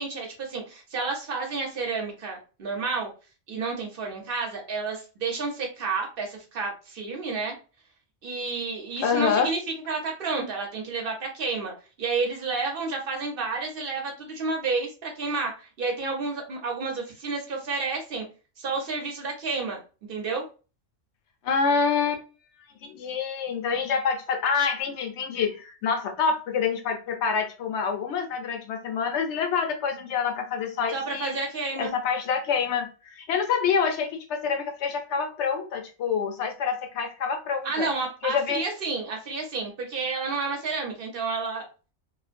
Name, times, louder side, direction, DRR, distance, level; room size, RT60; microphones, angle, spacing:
voice 1, 0.0-3.1 3.5-7.6 8.2-9.6 9.9-11.7 12.0-18.3 18.6-20.5 30.9-32.0 37.6-41.7, right 4 dB, 55° right, 0.9 m, -30 dB
voice 2, 9.0-9.5 21.4-22.2 22.8-31.4 31.8-37.9 38.2-38.6, left 6 dB, 70° left, 0.9 m, -27 dB
2.4 x 2.1 x 2.4 m
omnidirectional pair, 1.2 m